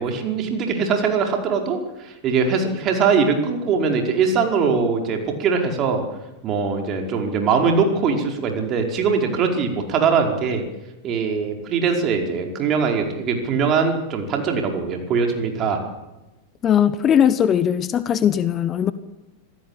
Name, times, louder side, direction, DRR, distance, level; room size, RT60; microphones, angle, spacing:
voice 1, 0.0-6.0 6.4-10.6 11.0-15.8, right 5 dB, 35° right, 3 dB, 5.1 m, -21 dB
voice 2, 16.6-18.9, left 9 dB, 25° left, 15 dB, 1.1 m, -19 dB
26.5 x 16.5 x 8.7 m, 1.0 s
figure-of-eight pair, 90°, 0 cm